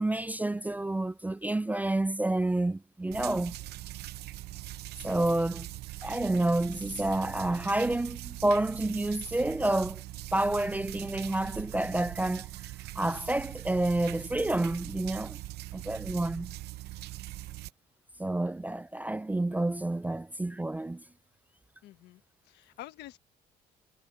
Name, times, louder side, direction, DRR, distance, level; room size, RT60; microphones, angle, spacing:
voice 1, 0.0-3.5 5.0-5.7 6.0-10.0 10.3-15.4 15.7-16.5 18.2-21.0, right 2 dB, 10° right, 0.4 m, -29 dB
sound 1, 3.1-17.7, right 16 dB, 75° right, 0.8 m, -42 dB
voice 2, 21.8-23.2, left 14 dB, 80° left, 1.5 m, -48 dB
cardioid pair, 110°, 17 cm